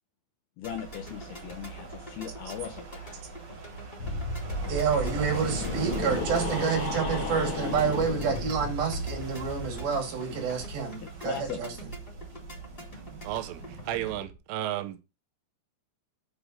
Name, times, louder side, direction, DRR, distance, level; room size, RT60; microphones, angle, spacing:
voice 1, 0.6-3.2 10.3-10.4 11.0-11.6, left 8 dB, 85° left, 2.2 m, -39 dB
sound 1, 0.6-14.4, right 2 dB, 10° left, 3.5 m, -45 dB
sound 2, 0.7-14.2, right 3 dB, 30° right, 3.6 m, -42 dB
sound 3, 4.0-9.8, left 2 dB, 70° left, 1.2 m, -33 dB
voice 2, 4.7-11.7, right 6 dB, 55° right, 3.5 m, -29 dB
voice 3, 13.2-15.0, right 13 dB, 80° right, 3.0 m, -33 dB
8.1 x 6.3 x 4.9 m
omnidirectional pair, 6.0 m